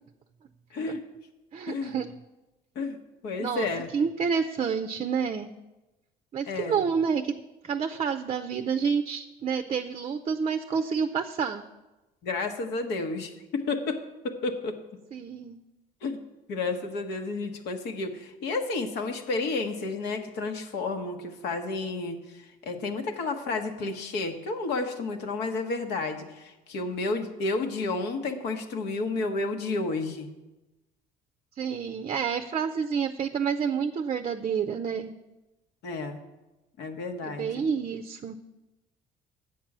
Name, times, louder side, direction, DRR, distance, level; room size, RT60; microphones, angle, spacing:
voice 1, 0.7-1.0 1.7-1.9 2.7-3.0 3.2-3.9 6.5-6.8 12.2-14.8 16.0-16.2 16.5-30.3 35.8-36.2 36.8-37.7, left 3 dB, 80° left, 5 dB, 1.2 m, -31 dB
voice 2, 1.5-2.1 3.4-3.7 3.9-5.5 6.3-7.4 7.6-11.6 15.1-15.6 31.6-35.1 37.2-38.4, right 6 dB, 40° right, 8 dB, 0.5 m, -29 dB
8.0 x 7.5 x 6.0 m, 1.0 s
cardioid pair, 110°, 17 cm